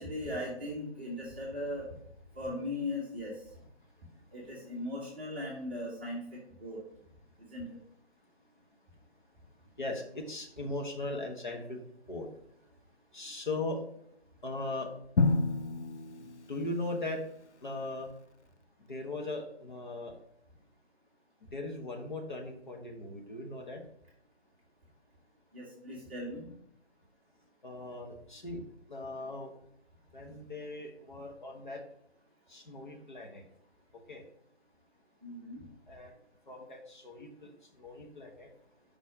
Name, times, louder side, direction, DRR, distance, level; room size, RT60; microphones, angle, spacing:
voice 1, 0.0-1.9 2.3-3.3 4.3-6.8 7.5-7.6 25.5-26.5 35.2-35.6, left 1 dB, 10° right, -6 dB, 0.8 m, -38 dB
voice 2, 9.8-11.8 12.1-12.3 13.1-13.8 14.4-14.9 16.2-17.2 17.6-18.1 18.9-20.1 21.5-23.8 27.6-28.6 28.9-29.5 30.1-31.8 32.5-33.4 34.1-34.2 35.9-36.1 36.5-37.5 37.8-38.5, left 2 dB, 45° left, 2 dB, 1.2 m, -39 dB
Drum, 15.2-17.2, left 3 dB, 80° left, 0.6 m, -30 dB
5.1 x 4.2 x 4.8 m, 0.71 s
figure-of-eight pair, 155°, 34 cm